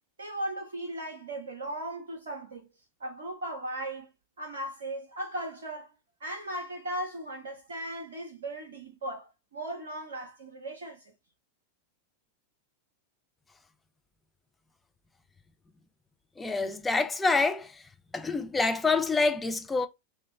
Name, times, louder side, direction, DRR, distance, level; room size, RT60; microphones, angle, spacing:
voice 1, 0.2-2.7 3.0-4.1 4.4-5.9 6.2-11.0, right 1 dB, 65° right, 0.6 m, -37 dB
voice 2, 16.4-17.7 18.1-19.9, left 3 dB, 10° left, 0.4 m, -26 dB
2.9 x 2.2 x 3.2 m
figure-of-eight pair, 90°, 0 cm